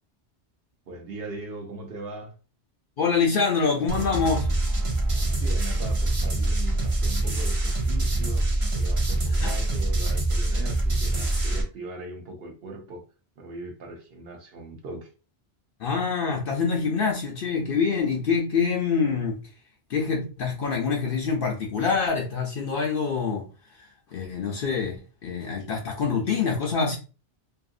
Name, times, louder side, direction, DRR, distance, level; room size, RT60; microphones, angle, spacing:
voice 1, 0.9-2.3 5.4-8.5 8.7-13.0 13.4-15.1, right 2 dB, 65° right, 0.9 m, -39 dB
voice 2, 3.0-4.5 9.4-9.6 15.8-19.4 19.9-23.5 23.8-25.0 25.2-27.0, left 5 dB, 60° left, 0.7 m, -25 dB
sound 1, 3.9-11.6, right 2 dB, 35° right, 0.6 m, -25 dB
2.6 x 2.5 x 2.4 m
omnidirectional pair, 1.2 m